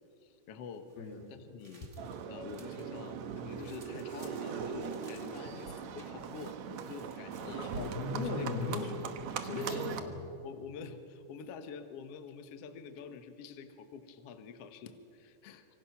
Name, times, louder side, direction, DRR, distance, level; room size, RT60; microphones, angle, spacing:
voice 1, 0.2-0.9 1.3-1.9 2.3-7.7 8.3-8.9 9.5-9.7 10.4-15.7, left 6 dB, 65° left, 8 dB, 1.6 m, -47 dB
sound 1, 0.7-2.9 3.2-9.0, right 3 dB, 25° right, 1.6 m, -61 dB
Livestock farm animals working animals, 2.0-10.0, right 7 dB, 65° right, 1.9 m, -40 dB
voice 2, 7.5-8.9 9.4-10.2, left 2 dB, 80° left, 2 dB, 4.8 m, -37 dB
26.5 x 24.0 x 5.9 m, 2.7 s
omnidirectional pair, 4.4 m